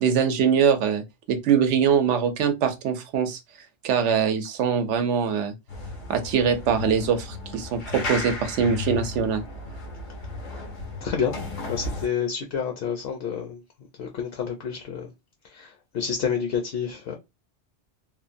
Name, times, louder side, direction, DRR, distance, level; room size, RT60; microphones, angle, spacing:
voice 1, 0.0-3.4 3.8-5.5 6.1-9.4, right 7 dB, 75° right, 0.9 m, -23 dB
sound 1, 5.7-12.1, left 2 dB, 85° left, 1.2 m, -34 dB
voice 2, 11.0-11.4 11.7-13.6 14.0-15.1 15.4-17.2, left 7 dB, 65° left, 0.7 m, -29 dB
3.0 x 2.1 x 2.5 m
omnidirectional pair, 1.2 m